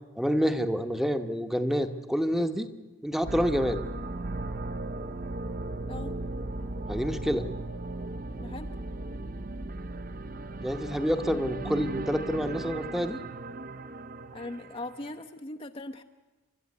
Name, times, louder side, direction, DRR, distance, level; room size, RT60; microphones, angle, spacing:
voice 1, 0.2-2.7 3.0-3.8 6.9-7.5 10.6-13.2, equal, ahead, 8 dB, 0.9 m, -28 dB
sound 1, 3.2-15.2, right 2 dB, 40° right, 0.7 m, -37 dB
voice 2, 8.4-8.7 14.3-16.0, left 1 dB, 25° left, 6 dB, 0.6 m, -39 dB
29.0 x 12.0 x 9.6 m, 1.2 s
head